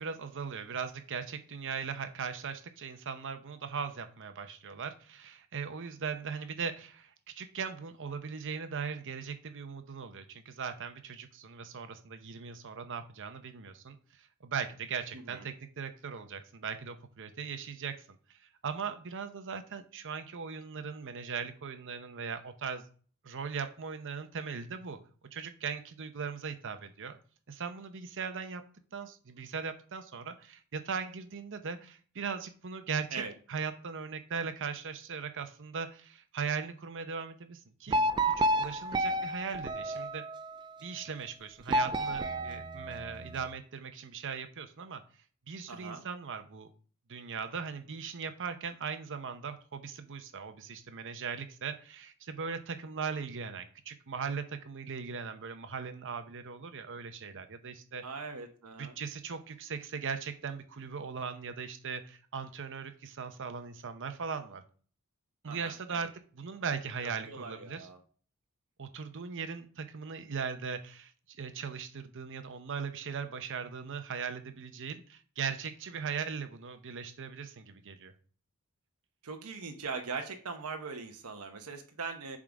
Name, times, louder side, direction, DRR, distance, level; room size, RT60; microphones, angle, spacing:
voice 1, 0.0-18.2 18.6-22.9 23.2-25.0 25.3-27.2 27.5-28.6 28.9-33.2 33.5-38.0 38.4-40.2 40.8-45.0 45.5-46.7 47.1-58.0 58.8-64.6 65.4-67.9 68.8-78.1, right 6 dB, 60° right, 9 dB, 0.8 m, -39 dB
voice 2, 15.1-15.4 33.1-33.3 45.7-46.0 58.0-59.0 65.5-66.1 67.3-68.0 79.2-82.4, right 4 dB, 85° right, 5 dB, 0.9 m, -41 dB
sound 1, 37.9-40.6 41.7-43.4, right 1 dB, 20° right, 0.3 m, -31 dB
7.5 x 3.8 x 4.7 m, 0.42 s
head